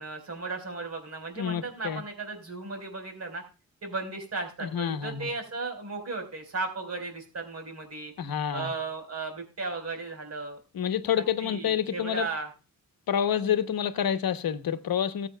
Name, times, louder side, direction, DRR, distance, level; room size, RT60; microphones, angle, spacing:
voice 1, 0.0-3.4 3.8-8.1 8.5-10.6 11.2-12.5, right 3 dB, 45° right, 4.3 m, -35 dB
voice 2, 1.4-2.0 4.6-5.3 8.2-8.7 10.7-12.3 13.1-15.3, left 9 dB, 80° left, 1.0 m, -28 dB
18.5 x 8.1 x 2.2 m
wide cardioid pair, 145°, 35 cm